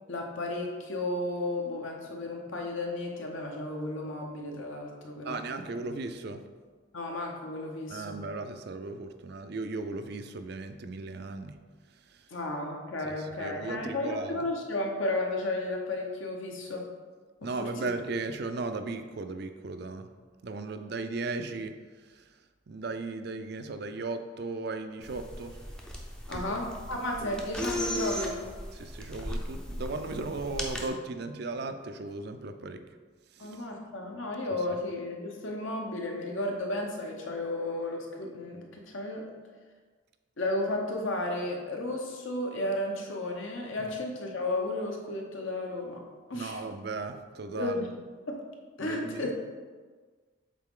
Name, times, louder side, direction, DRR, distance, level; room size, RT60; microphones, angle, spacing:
voice 1, 0.1-5.4 6.9-8.2 12.3-16.9 17.4-17.7 26.3-28.4 33.4-39.3 40.4-46.0 46.3-46.6 47.5-47.9 48.3-48.4 48.8-49.3, left 2 dB, 70° left, 1 dB, 1.0 m, -33 dB
voice 2, 5.2-6.5 7.9-11.6 11.9-12.4 13.0-14.5 17.4-20.1 20.4-22.4 22.7-25.6 26.3-26.6 27.2-27.4 28.7-32.8 33.3-33.6 46.3-47.9 48.8-49.3, right 3 dB, 50° right, 8 dB, 0.4 m, -36 dB
sound 1, 25.0-30.9, equal, 5° left, 0.5 m, -37 dB
7.5 x 4.1 x 3.7 m, 1.5 s
head